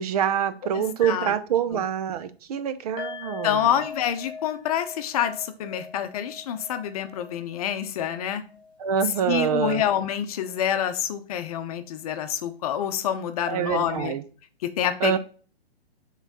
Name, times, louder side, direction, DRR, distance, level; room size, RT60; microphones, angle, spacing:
voice 1, 0.0-3.6 8.8-9.8 13.5-14.2 15.0-15.2, right 8 dB, 35° right, 12 dB, 0.7 m, -25 dB
voice 2, 0.7-1.3 1.7-1.8 3.4-8.4 9.3-14.1 14.6-15.2, left 9 dB, 35° left, 9 dB, 0.8 m, -27 dB
sound 1, 3.0-10.2 10.4-10.6 11.0-11.1, left 5 dB, 15° left, 1.9 m, -42 dB
7.0 x 4.0 x 3.9 m, 0.39 s
figure-of-eight pair, 130°, 32 cm